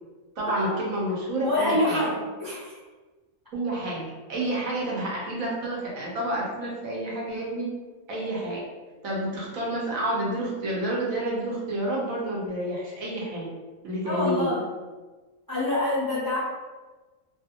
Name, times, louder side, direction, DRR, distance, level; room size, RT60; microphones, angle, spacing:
voice 1, 0.4-2.0 3.5-7.7 8.1-8.6 9.0-13.5 13.8-14.5, right 1 dB, 70° right, -4 dB, 1.2 m, -29 dB
voice 2, 1.4-2.8 14.0-14.6 15.5-16.4, left 1 dB, 25° left, -8 dB, 0.4 m, -26 dB
2.9 x 2.4 x 2.8 m, 1.3 s
omnidirectional pair, 1.5 m